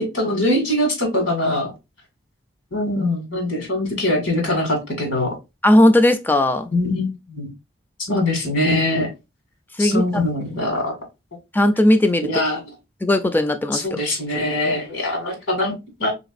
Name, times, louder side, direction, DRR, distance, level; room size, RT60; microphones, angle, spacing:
voice 1, 0.0-1.7 2.7-5.4 6.7-7.5 8.1-9.1 9.8-10.9 12.2-12.6 13.7-16.1, left 1 dB, 75° left, 2.0 m, -22 dB
voice 2, 5.6-6.7 8.1-8.2 9.8-10.2 11.5-12.3 13.0-14.0, left 1 dB, 10° left, 0.3 m, -17 dB
3.9 x 3.6 x 2.5 m
head